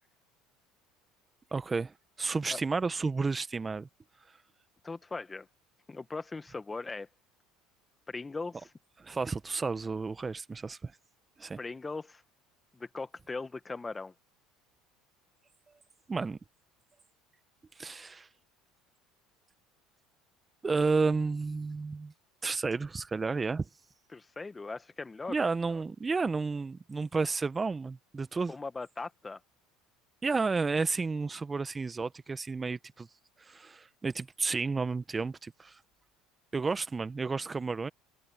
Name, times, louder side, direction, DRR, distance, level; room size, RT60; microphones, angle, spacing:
voice 1, 1.5-3.9 9.0-10.9 11.4-11.6 16.1-16.4 17.8-18.3 20.6-22.1 22.4-23.7 25.3-28.5 30.2-33.1 33.4-35.8 36.5-37.9, right 4 dB, 25° right, 1.4 m, -31 dB
voice 2, 4.8-5.5 5.9-7.1 8.1-8.7 11.6-12.2 12.7-14.1 24.1-25.5 28.5-29.4, left 3 dB, 20° left, 1.5 m, -39 dB
hypercardioid pair, 75°, 0 cm